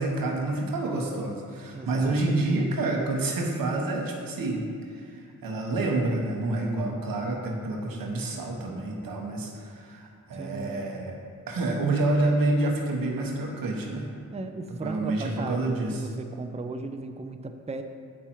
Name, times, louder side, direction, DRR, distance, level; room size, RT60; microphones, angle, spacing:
voice 1, 0.0-11.2 11.5-14.1 14.7-16.1, right 2 dB, 90° right, 1 dB, 1.0 m, -28 dB
voice 2, 1.7-2.3 7.9-8.1 10.3-10.8 14.3-17.8, right 3 dB, 20° right, 6 dB, 0.5 m, -36 dB
7.5 x 4.5 x 4.5 m, 2.4 s
cardioid pair, 50°, 34 cm